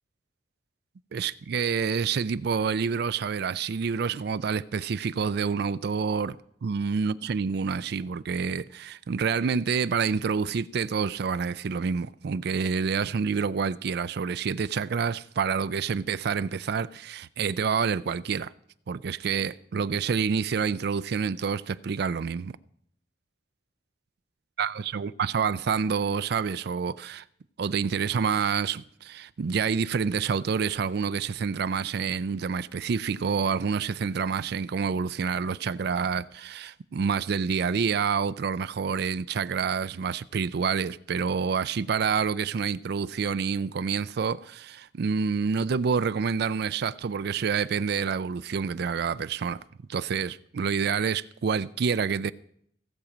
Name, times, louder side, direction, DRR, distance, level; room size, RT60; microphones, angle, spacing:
voice 1, 1.1-6.4 6.6-18.5 18.9-22.6 24.6-27.2 27.6-49.6 49.9-52.3, right 6 dB, 60° right, 0.4 m, -28 dB
16.5 x 7.2 x 5.0 m
head